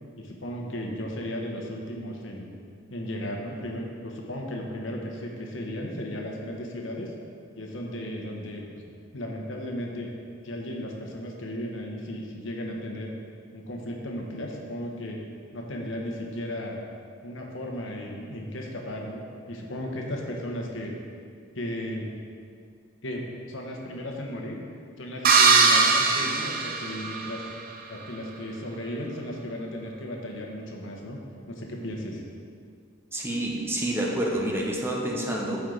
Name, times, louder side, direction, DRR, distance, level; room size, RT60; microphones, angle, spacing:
voice 1, 0.2-2.5 2.9-7.1 7.5-8.6 9.1-10.1 10.4-13.1 13.5-15.2 15.5-16.8 17.2-21.0 21.5-22.1 23.0-24.6 25.0-27.5 27.9-31.2 31.5-32.2, left 1 dB, 75° left, 0 dB, 1.1 m, -35 dB
sound 1, 25.2-27.5, right 4 dB, 45° right, 0.7 m, -20 dB
voice 2, 33.1-35.6, right 1 dB, 10° right, -2 dB, 0.9 m, -28 dB
12.5 x 4.7 x 3.9 m, 2.2 s
head